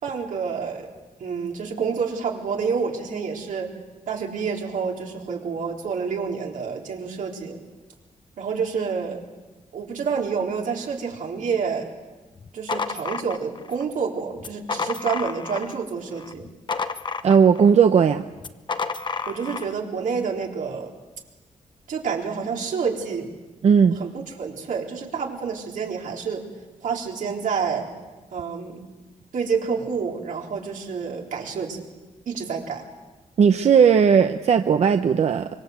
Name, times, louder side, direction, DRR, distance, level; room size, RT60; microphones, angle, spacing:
voice 1, 0.0-0.9 1.2-3.7 4.1-7.6 8.4-9.2 9.7-11.9 12.5-16.5 19.3-20.9 21.9-23.3 24.0-26.5 26.8-27.9 28.3-28.8 29.3-31.8 32.3-32.9, right 5 dB, 90° right, 0 dB, 4.0 m, -28 dB
sound 1, 12.4-13.8 14.4-15.8 16.2-17.7 18.4-19.7, left 5 dB, 35° left, 0.9 m, -30 dB
voice 2, 17.2-18.2 23.6-24.0 33.4-35.5, right 7 dB, 55° right, 7 dB, 0.8 m, -16 dB
25.0 x 24.5 x 8.1 m, 1.2 s
wide cardioid pair, 160°, 13 cm